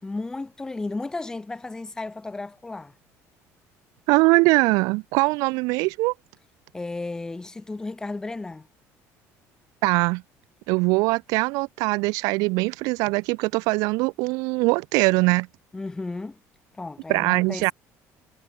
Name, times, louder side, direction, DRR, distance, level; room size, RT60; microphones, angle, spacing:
voice 1, 0.0-2.9 6.7-8.7 15.7-16.4 16.7-17.7, left 3 dB, 10° left, 5.8 m, -33 dB
voice 2, 4.1-6.1 9.8-10.2 10.7-15.5 17.1-17.7, right 26 dB, 90° right, 3.1 m, -22 dB
cardioid pair, 160°, 6 cm